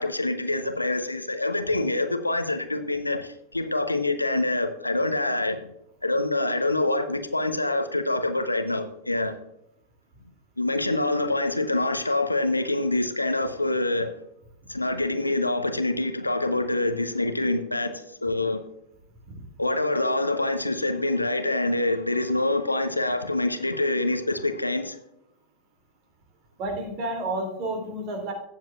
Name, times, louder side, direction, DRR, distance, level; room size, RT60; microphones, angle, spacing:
voice 1, 0.0-5.6 6.0-9.3 10.6-14.1 14.7-18.6 19.6-25.0, left 2 dB, 85° left, 8 dB, 0.9 m, -26 dB
voice 2, 26.6-28.3, right 1 dB, 40° right, 3 dB, 2.8 m, -31 dB
16.0 x 7.6 x 2.4 m, 0.81 s
figure-of-eight pair, 90°, 0 cm